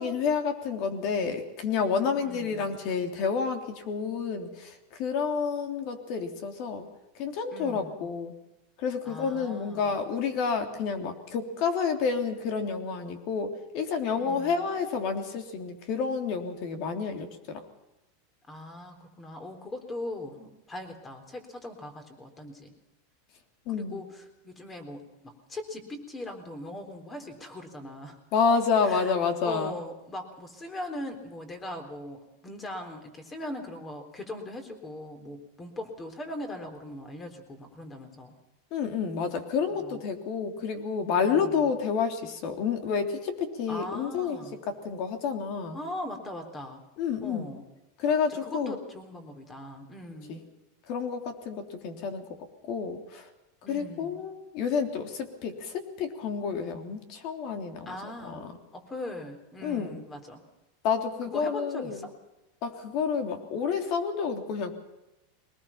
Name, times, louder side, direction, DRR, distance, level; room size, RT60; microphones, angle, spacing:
voice 1, 0.0-6.9 7.2-8.3 8.8-17.6 23.7-24.0 28.3-29.7 38.7-44.4 44.7-45.8 47.0-47.5 48.0-48.8 50.3-50.4 50.9-52.2 52.6-53.3 53.7-58.5 59.6-60.0 60.8-62.1 62.6-64.7, left 6 dB, 50° left, 6 dB, 3.2 m, -29 dB
voice 2, 2.1-2.8 7.5-8.2 9.0-10.0 14.1-14.7 18.5-22.7 23.7-28.2 28.9-29.1 29.4-38.3 39.7-40.0 41.2-41.7 43.7-44.6 45.7-46.8 47.2-47.7 48.4-50.4 53.6-54.2 57.9-58.5 58.7-60.4 61.3-62.1, left 1 dB, 15° left, 7 dB, 3.7 m, -40 dB
22.5 x 20.0 x 5.8 m, 1.0 s
supercardioid pair, 140°, 0 cm